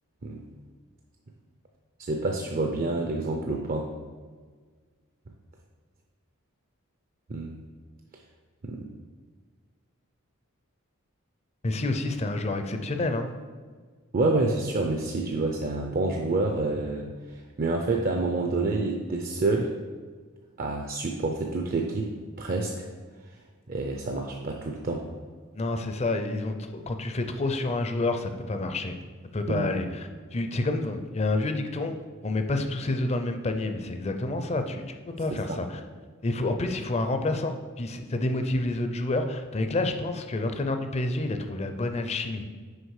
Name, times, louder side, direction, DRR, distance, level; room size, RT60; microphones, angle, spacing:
voice 1, 2.0-3.9 7.3-7.6 8.6-8.9 14.1-19.7 20.6-22.9 23.7-25.1 29.5-29.7 35.3-35.6, right 2 dB, 40° right, 2 dB, 0.5 m, -28 dB
voice 2, 11.6-13.3 25.5-29.0 29.3-35.8 36.2-42.5, left 2 dB, 30° left, 7 dB, 0.5 m, -29 dB
6.4 x 4.9 x 4.8 m, 1.5 s
head